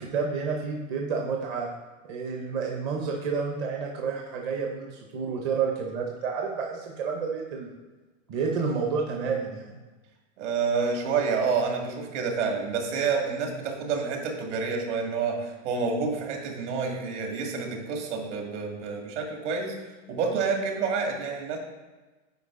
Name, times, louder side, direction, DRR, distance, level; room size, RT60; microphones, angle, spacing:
voice 1, 0.0-1.7 2.1-7.7 8.3-9.7, right 5 dB, 25° right, 0 dB, 0.6 m, -30 dB
voice 2, 10.4-19.7 20.1-21.6, right 5 dB, 60° right, 1 dB, 2.0 m, -28 dB
9.3 x 4.6 x 3.6 m, 1.2 s
supercardioid pair, 160°, 39 cm